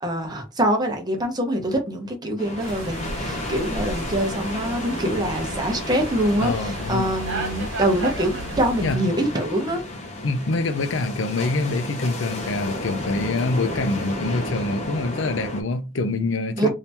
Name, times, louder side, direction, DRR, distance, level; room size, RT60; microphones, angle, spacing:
voice 1, 0.0-9.8 16.6-16.7, right 1 dB, 20° right, 0.9 m, -24 dB
sound 1, 2.4-15.6, left 1 dB, 35° left, 0.7 m, -33 dB
sound 2, 2.6-9.0, right 2 dB, 80° right, 1.0 m, -34 dB
voice 2, 6.4-7.1 8.8-9.0 10.2-16.7, left 2 dB, 70° left, 0.5 m, -25 dB
2.8 x 2.7 x 3.4 m
head